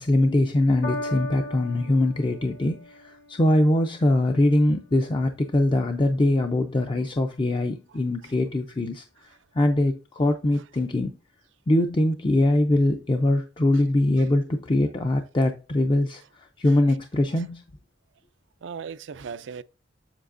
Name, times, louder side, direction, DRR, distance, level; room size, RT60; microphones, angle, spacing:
voice 1, 0.0-11.2 11.7-17.6, left 1 dB, 25° left, 0.5 m, -23 dB
Piano, 0.8-7.4 8.2-8.3, left 1 dB, 70° left, 2.5 m, -40 dB
voice 2, 7.9-8.3 10.5-10.6 16.7-17.0 17.3-17.4 18.6-19.6, right 6 dB, 85° right, 0.4 m, -39 dB
7.4 x 6.6 x 2.5 m
head